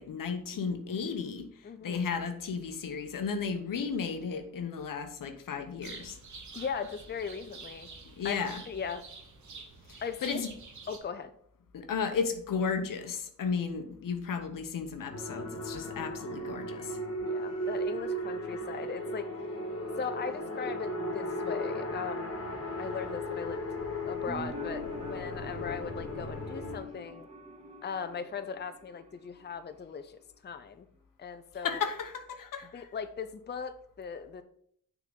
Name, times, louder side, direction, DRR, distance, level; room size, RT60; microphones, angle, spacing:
voice 1, 0.0-1.5 1.8-6.2 8.2-8.6 10.2-10.5 11.7-16.9 31.6-32.9, left 5 dB, 85° left, 7 dB, 0.9 m, -34 dB
voice 2, 1.6-2.0 6.5-7.9 8.2-9.0 10.0-10.4 10.9-11.3 15.8-16.2 17.2-19.3 20.0-22.3 22.8-23.6 24.0-27.3 27.8-30.9 31.2-31.9 32.7-34.4, left 6 dB, 30° left, 10 dB, 0.5 m, -39 dB
sound 1, 5.8-11.0, right 4 dB, 65° right, 1.3 m, -48 dB
sound 2, 15.1-26.8, equal, 50° left, 1.6 m, -36 dB
sound 3, 24.3-29.8 30.0-30.1, equal, 20° right, 0.9 m, -45 dB
6.2 x 3.8 x 5.2 m, 0.67 s
cardioid pair, 60°, 32 cm